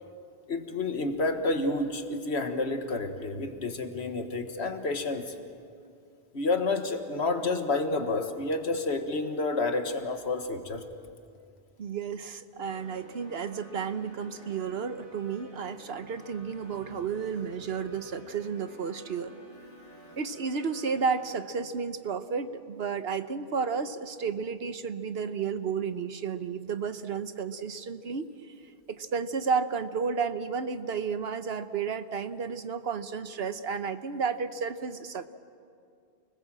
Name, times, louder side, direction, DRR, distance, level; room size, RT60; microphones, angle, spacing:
voice 1, 0.5-5.3 6.3-10.8, left 3 dB, 80° left, 6 dB, 1.7 m, -29 dB
voice 2, 11.8-19.4 20.2-28.3 28.9-35.3, right 6 dB, 70° right, 10 dB, 1.2 m, -32 dB
sound 1, 12.6-21.4, equal, 25° right, 8.1 m, -51 dB
29.0 x 20.5 x 7.6 m, 2.4 s
omnidirectional pair, 1.1 m